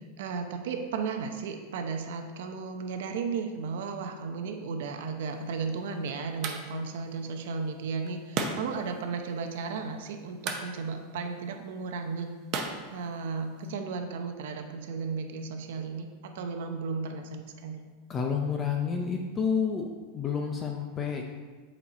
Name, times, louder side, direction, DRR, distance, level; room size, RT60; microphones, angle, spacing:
voice 1, 0.2-12.3 12.9-16.1 16.3-17.8, right 5 dB, 70° right, 5 dB, 0.7 m, -34 dB
sound 1, 5.2-13.7, right 4 dB, 35° right, 0.7 m, -39 dB
voice 2, 18.1-19.9 20.1-21.2, left 6 dB, 20° left, 2 dB, 0.5 m, -29 dB
8.1 x 4.3 x 4.2 m, 1.4 s
supercardioid pair, 155°, 0 cm